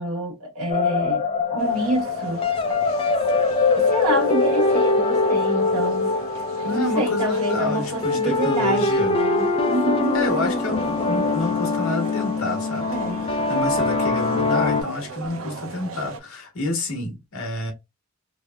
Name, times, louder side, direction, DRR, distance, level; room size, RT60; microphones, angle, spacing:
voice 1, 0.0-2.4 3.8-6.1 6.6-10.2 12.9-13.2, right 1 dB, 90° right, 1.1 m, -27 dB
sound 1, 0.7-14.8, left 3 dB, 25° left, 0.3 m, -23 dB
sound 2, 1.6-16.2, right 3 dB, 65° right, 0.6 m, -38 dB
voice 2, 6.7-9.1 10.1-12.9 13.3-17.7, left 2 dB, 75° left, 1.2 m, -29 dB
3.3 x 2.1 x 2.2 m
head